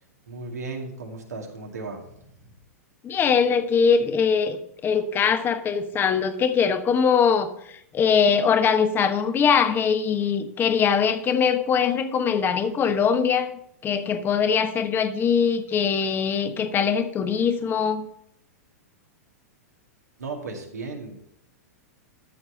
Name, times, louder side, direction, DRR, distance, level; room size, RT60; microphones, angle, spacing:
voice 1, 0.3-2.5 20.2-21.3, right 3 dB, 85° right, 1 dB, 2.3 m, -36 dB
voice 2, 3.0-7.5 7.9-13.5 13.8-18.1, left 6 dB, 25° left, 9 dB, 1.1 m, -22 dB
13.0 x 4.7 x 5.6 m, 0.75 s
hypercardioid pair, 105°, 9 cm